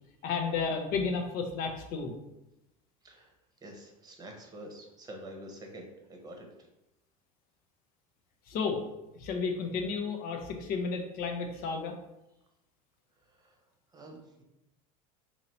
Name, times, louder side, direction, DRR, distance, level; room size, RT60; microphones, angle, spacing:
voice 1, 0.2-2.1 8.5-8.8 9.2-12.0, left 5 dB, 55° left, 4 dB, 0.7 m, -32 dB
voice 2, 3.6-6.5 13.4-13.6 13.9-14.4, right 1 dB, 20° right, 2 dB, 0.9 m, -47 dB
2.8 x 2.8 x 4.3 m, 0.93 s
hypercardioid pair, 95°, 19 cm